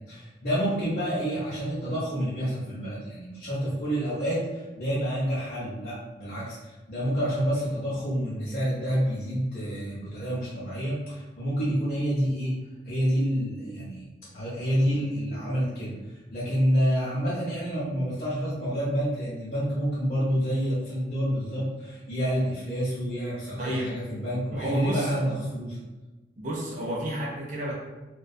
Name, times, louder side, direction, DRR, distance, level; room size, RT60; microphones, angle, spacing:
voice 1, 0.0-12.6 12.8-14.1 14.3-25.8, equal, 45° left, -10 dB, 0.6 m, -28 dB
voice 2, 23.6-23.9 24.5-25.1 26.4-27.7, right 1 dB, 45° right, -3 dB, 0.4 m, -31 dB
2.4 x 2.2 x 2.5 m, 1.2 s
head